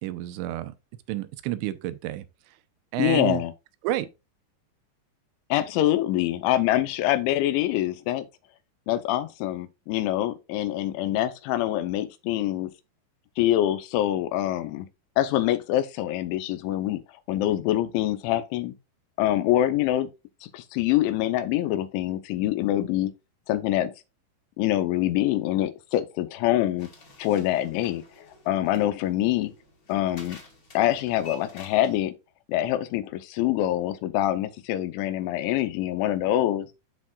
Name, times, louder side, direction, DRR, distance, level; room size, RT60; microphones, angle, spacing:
voice 1, 0.0-0.7 1.1-2.3 2.9-3.4 3.8-4.1, right 14 dB, 85° right, 2.8 m, -29 dB
voice 2, 3.0-3.5 5.5-8.2 8.9-12.7 13.4-14.9 15.2-17.0 17.3-18.7 19.2-20.1 20.4-23.1 23.5-23.9 24.6-26.9 27.2-28.0 28.5-29.5 29.9-30.4 30.7-32.1 32.5-36.7, left 13 dB, 85° left, 3.2 m, -25 dB
sound 1, 26.8-32.0, left 3 dB, 35° left, 1.8 m, -49 dB
13.0 x 4.4 x 2.4 m
omnidirectional pair, 5.3 m